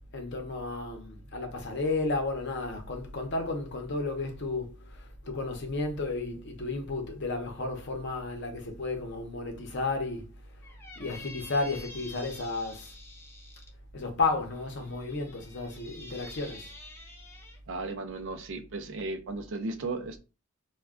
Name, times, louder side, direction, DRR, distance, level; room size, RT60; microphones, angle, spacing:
voice 1, 0.1-10.3 11.0-12.9 13.9-16.7, left 3 dB, 55° left, 0.7 m, -33 dB
Squeak, 10.6-13.7 14.5-17.6, left 2 dB, 10° left, 0.5 m, -48 dB
voice 2, 17.7-20.2, right 3 dB, 60° right, 0.4 m, -35 dB
2.3 x 2.2 x 3.5 m
head